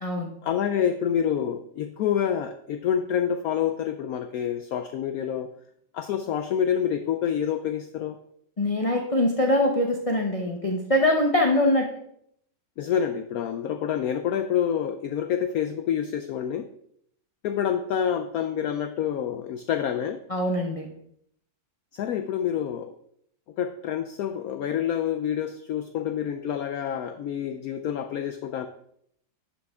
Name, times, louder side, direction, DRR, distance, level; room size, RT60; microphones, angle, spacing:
voice 1, 0.4-5.5 5.9-8.2 12.8-16.7 17.4-20.2 21.9-22.9 23.6-28.7, left 9 dB, 70° left, 8 dB, 0.9 m, -27 dB
voice 2, 8.6-11.9 20.3-20.9, left 1 dB, 35° left, 1 dB, 0.6 m, -23 dB
11.0 x 6.0 x 3.5 m, 0.70 s
omnidirectional pair, 1.9 m